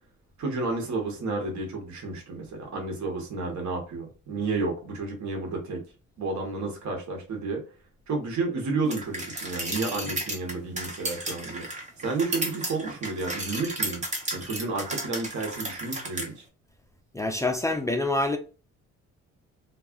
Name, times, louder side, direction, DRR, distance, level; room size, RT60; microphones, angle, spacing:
voice 1, 0.4-5.8 6.2-7.6 8.1-11.7 12.0-14.0 14.3-16.4, right 3 dB, 65° right, 1.1 m, -31 dB
sound 1, 8.9-16.3, right 1 dB, 25° right, 0.7 m, -33 dB
voice 2, 17.1-18.4, left 2 dB, 10° left, 0.3 m, -26 dB
2.3 x 2.0 x 3.6 m
cardioid pair, 90°, 30 cm